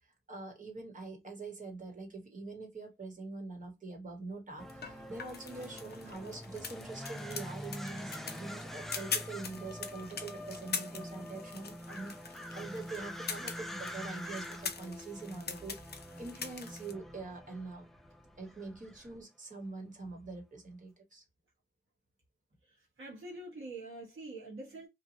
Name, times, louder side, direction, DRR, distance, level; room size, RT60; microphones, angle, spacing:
voice 1, 0.0-15.9 16.2-17.9 18.4-21.2, right 3 dB, 40° right, 1.3 m, -44 dB
sound 1, 4.6-19.2, equal, ahead, 0.4 m, -45 dB
sound 2, 4.7-16.9, left 5 dB, 55° left, 0.5 m, -43 dB
voice 2, 22.6-24.9, right 2 dB, 75° right, 1.3 m, -45 dB
3.0 x 2.4 x 2.6 m
wide cardioid pair, 110°, 21 cm